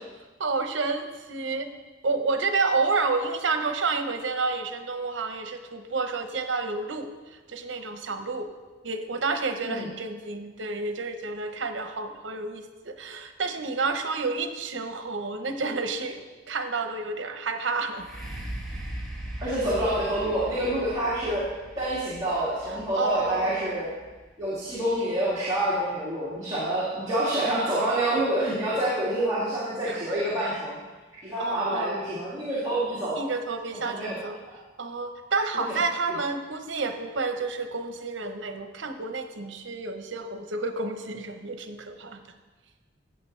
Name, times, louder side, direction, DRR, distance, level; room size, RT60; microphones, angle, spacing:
voice 1, 0.4-1.7 2.0-7.1 7.5-8.5 8.8-18.1 21.2-21.4 22.7-23.7 26.9-27.1 29.9-30.2 31.4-31.9 33.1-34.4 34.8-42.2, right 3 dB, 80° right, 7 dB, 0.9 m, -30 dB
sound 1, 17.9-25.7 26.3-26.4, right 1 dB, 5° left, 1.7 m, -40 dB
voice 2, 19.4-21.5 21.8-23.9 24.4-30.8 31.2-33.2 33.7-34.2 34.5-34.6 35.7-35.8, right 1 dB, 20° right, -10 dB, 2.2 m, -27 dB
14.5 x 8.3 x 3.3 m, 1.3 s
head